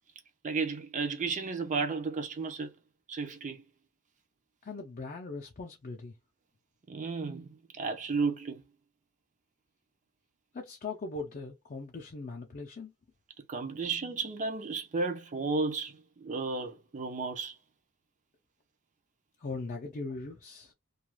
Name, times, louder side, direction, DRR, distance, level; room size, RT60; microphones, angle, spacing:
voice 1, 0.4-2.7 3.1-3.6 6.9-7.5 7.7-8.6 13.5-17.5, right 4 dB, 35° right, 0.5 m, -33 dB
voice 2, 4.6-6.1 10.5-12.9 19.4-20.7, left 3 dB, 40° left, 0.4 m, -40 dB
2.3 x 2.3 x 3.0 m
head